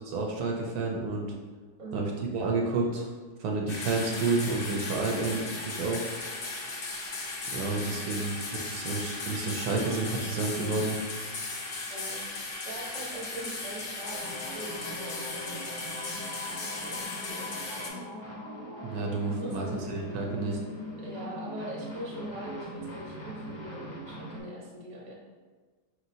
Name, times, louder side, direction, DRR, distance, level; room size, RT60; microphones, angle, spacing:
voice 1, 0.1-1.3 1.9-3.1 3.4-6.1 7.5-11.0 18.8-20.6, right 3 dB, 75° right, 0 dB, 1.0 m, -30 dB
voice 2, 1.8-2.2 8.0-8.2 11.9-15.6 16.8-18.1 19.4-19.8 21.0-25.1, right 1 dB, 35° right, -4 dB, 0.8 m, -42 dB
sound 1, 3.7-17.9, left 3 dB, 65° left, 0.5 m, -37 dB
sound 2, 14.0-24.4, equal, 15° left, 0.5 m, -41 dB
4.8 x 3.0 x 2.6 m, 1.4 s
omnidirectional pair, 1.7 m